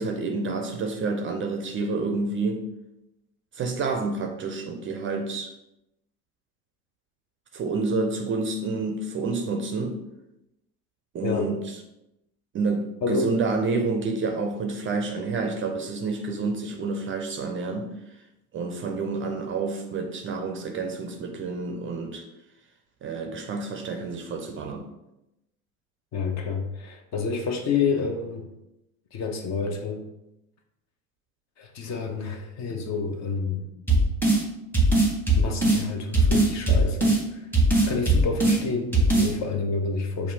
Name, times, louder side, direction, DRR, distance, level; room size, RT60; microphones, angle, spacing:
voice 1, 0.0-2.7 3.5-5.5 7.5-10.0 11.1-11.6 12.5-17.9 18.5-22.3 23.0-24.9, right 3 dB, 30° right, 4 dB, 0.5 m, -29 dB
voice 2, 26.1-28.5 29.1-30.1 31.6-33.7 35.4-37.5 37.8-40.3, left 5 dB, 40° left, 4 dB, 0.7 m, -29 dB
sound 1, 33.9-34.4 34.7-35.8 36.1-37.2 37.5-38.6 38.9-39.3, right 2 dB, 5° left, 0.9 m, -19 dB
5.5 x 2.3 x 2.7 m, 0.90 s
hypercardioid pair, 70°, 43 cm